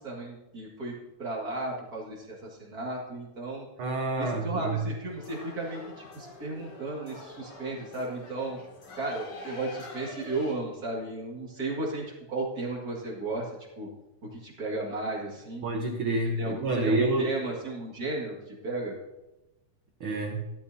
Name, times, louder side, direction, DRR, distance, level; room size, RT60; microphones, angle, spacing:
voice 1, 0.0-3.7 4.2-8.6 9.0-13.5 13.8-13.9 14.3-15.7 16.4-19.0, right 2 dB, 35° right, -3 dB, 2.1 m, -34 dB
voice 2, 3.8-4.8 15.6-17.3 20.0-20.4, right 2 dB, 70° right, 3 dB, 1.3 m, -28 dB
sound 1, 5.1-10.5, left 2 dB, 70° left, 3.6 m, -45 dB
15.0 x 12.0 x 2.7 m, 1.0 s
omnidirectional pair, 3.6 m